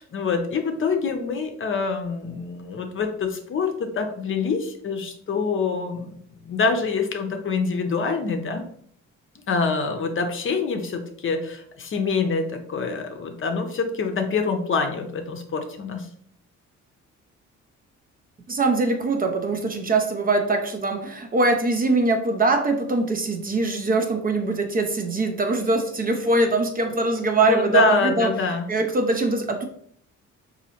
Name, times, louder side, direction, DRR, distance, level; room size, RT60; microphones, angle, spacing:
voice 1, 0.0-8.6 9.5-16.1 27.4-28.7, left 4 dB, 45° left, 5 dB, 0.6 m, -25 dB
voice 2, 18.5-28.3 28.7-29.6, right 3 dB, 30° right, 5 dB, 0.5 m, -22 dB
3.9 x 2.7 x 2.8 m, 0.63 s
cardioid pair, 90°, 30 cm